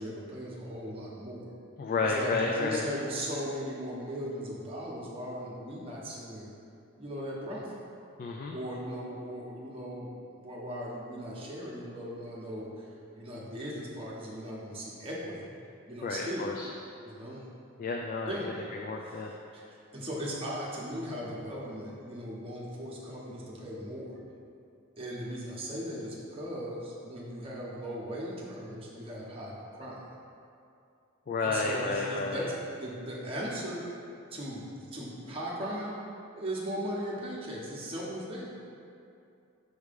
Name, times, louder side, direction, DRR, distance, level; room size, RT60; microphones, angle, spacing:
voice 1, 0.0-1.5 2.0-6.5 7.0-7.7 8.5-12.9 13.1-15.5 15.9-16.5 17.0-17.4 18.3-18.5 19.1-19.2 19.5-24.2 25.0-30.0 31.4-33.8 34.3-36.0 36.3-38.5, equal, 25° right, -6 dB, 1.1 m, -38 dB
voice 2, 1.8-2.9 8.2-8.6 16.0-16.7 17.8-18.4 18.8-19.3 31.3-32.4, left 3 dB, 40° left, 1 dB, 0.3 m, -31 dB
6.4 x 3.2 x 5.2 m, 2.6 s
head